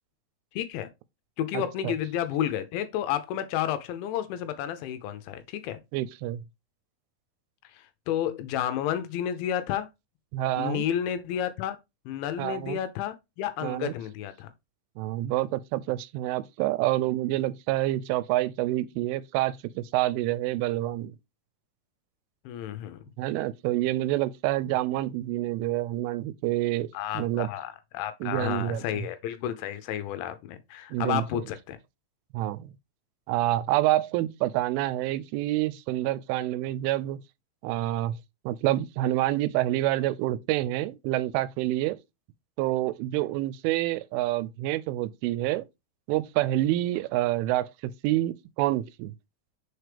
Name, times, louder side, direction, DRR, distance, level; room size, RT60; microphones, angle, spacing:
voice 1, 0.5-0.9 1.4-5.8 7.7-9.9 10.6-11.8 12.1-14.5 22.5-23.0 26.9-31.8, left 10 dB, 80° left, 2.8 m, -31 dB
voice 2, 1.5-1.9 5.9-6.4 10.3-10.8 12.4-12.8 13.6-13.9 15.0-21.1 23.2-26.9 27.1-27.5 28.2-29.0 30.9-31.2 32.3-32.7 33.3-37.2 37.6-38.2 38.5-42.0 42.6-45.7 46.1-47.7 48.0-49.1, right 15 dB, 85° right, 3.0 m, -27 dB
6.4 x 4.6 x 3.3 m
omnidirectional pair, 5.6 m